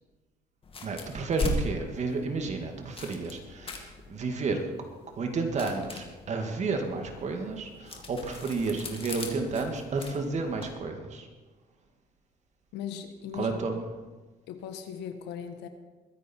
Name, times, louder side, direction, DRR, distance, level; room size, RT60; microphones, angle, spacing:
sound 1, 0.6-10.7, left 2 dB, 35° left, 2.1 m, -40 dB
voice 1, 0.8-4.7 5.2-11.3 13.3-13.9, right 3 dB, 45° right, 4 dB, 2.3 m, -31 dB
voice 2, 12.7-13.7 14.5-15.7, left 8 dB, 90° left, 8 dB, 1.5 m, -38 dB
22.0 x 9.6 x 4.7 m, 1.3 s
cardioid pair, 110°, 17 cm